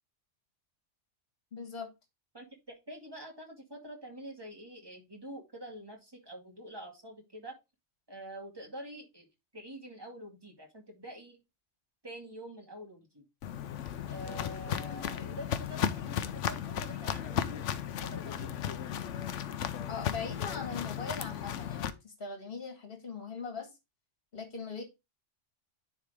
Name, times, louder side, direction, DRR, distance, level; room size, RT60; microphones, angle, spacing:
voice 1, 1.5-1.9 14.4-15.4 19.9-23.7 24.3-24.8, left 5 dB, 50° left, 1.8 m, -41 dB
voice 2, 2.3-7.5 8.1-9.3 9.5-11.4 12.0-13.2 14.1-17.7 18.0-18.6, equal, 20° right, 2.2 m, -46 dB
Walk footsteps, 13.4-21.9, left 9 dB, 75° left, 1.0 m, -35 dB
10.0 x 4.0 x 3.4 m
omnidirectional pair, 1.2 m